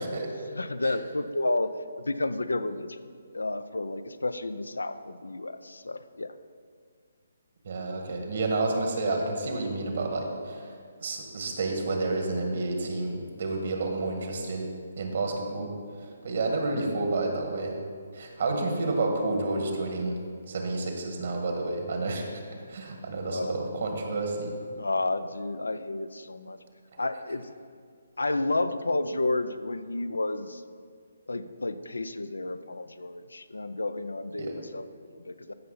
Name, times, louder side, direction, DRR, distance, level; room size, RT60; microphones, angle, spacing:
voice 1, 0.0-0.5 0.8-0.9 7.6-10.7 11.0-14.7 15.0-15.7 16.0-17.8 18.1-20.2 20.5-22.3 22.7-24.5 34.4-34.6, right 2 dB, 60° right, 2 dB, 1.7 m, -30 dB
voice 2, 0.5-1.7 2.0-3.0 3.3-6.3 22.5-22.6 23.2-23.7 24.8-26.6 27.0-27.5 28.2-30.6 31.3-35.5, left 2 dB, 90° left, 12 dB, 0.5 m, -31 dB
14.5 x 5.7 x 4.0 m, 2.1 s
figure-of-eight pair, 145°, 0 cm